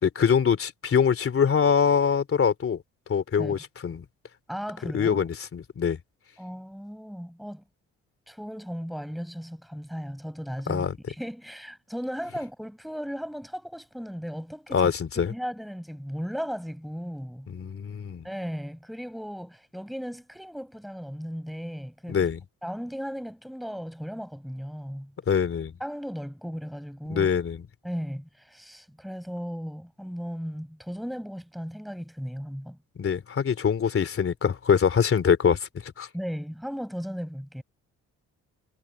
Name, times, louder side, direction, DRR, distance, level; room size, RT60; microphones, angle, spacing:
voice 1, 0.0-2.8 3.1-4.0 4.9-6.0 10.7-11.0 14.7-15.3 17.5-18.3 22.1-22.4 25.3-25.7 27.1-27.6 33.0-36.1, left 7 dB, 45° left, 3.1 m, -24 dB
voice 2, 4.5-5.2 6.4-7.6 8.3-14.9 15.3-17.5 18.2-22.3 22.6-25.1 25.8-27.3 27.8-32.8 36.1-37.6, equal, ahead, 6.2 m, -36 dB
cardioid pair, 90°, 30 cm